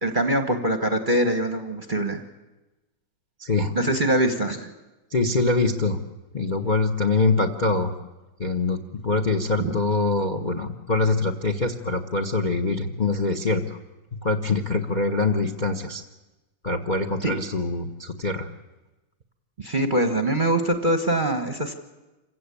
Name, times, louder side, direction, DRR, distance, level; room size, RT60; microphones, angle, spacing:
voice 1, 0.0-2.2 3.7-4.7 9.6-9.7 17.2-17.3 19.6-21.7, right 1 dB, 30° right, 6 dB, 1.0 m, -23 dB
voice 2, 3.4-3.8 5.1-6.0 6.3-7.9 8.4-13.8 14.2-16.0 16.6-18.5, left 3 dB, 35° left, 7 dB, 0.8 m, -24 dB
27.0 x 16.0 x 8.4 m, 1.1 s
omnidirectional pair, 2.4 m